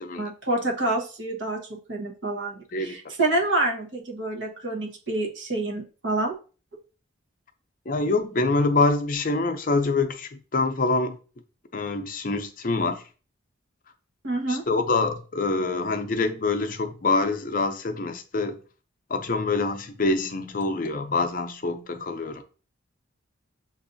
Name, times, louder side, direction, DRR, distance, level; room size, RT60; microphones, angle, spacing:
voice 1, 0.2-6.4 14.2-14.6, right 2 dB, 70° right, 1.2 m, -27 dB
voice 2, 7.9-11.2 11.7-13.0 14.5-18.6 19.1-22.4, left 3 dB, 45° left, 0.5 m, -25 dB
6.9 x 2.6 x 2.6 m
head